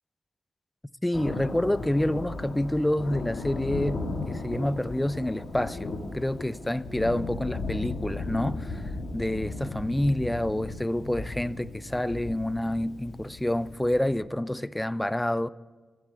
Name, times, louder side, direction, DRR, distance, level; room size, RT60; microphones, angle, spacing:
voice 1, 1.0-4.0 4.3-15.5, left 1 dB, 10° left, 0.3 m, -28 dB
Thunder, 1.1-14.2, left 3 dB, 65° left, 1.8 m, -36 dB
13.0 x 8.9 x 6.9 m
cardioid pair, 80°, 0 cm